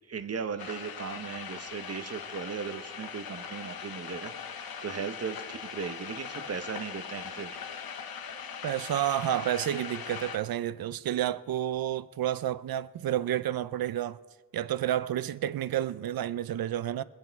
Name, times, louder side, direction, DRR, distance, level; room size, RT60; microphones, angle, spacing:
voice 1, 0.1-7.6, right 6 dB, 45° right, 0.9 m, -37 dB
sound 1, 0.6-10.4, left 7 dB, 85° left, 0.9 m, -40 dB
voice 2, 8.6-14.2 14.5-17.0, right 12 dB, 80° right, 0.5 m, -30 dB
23.5 x 8.2 x 4.6 m
wide cardioid pair, 145°, 35 cm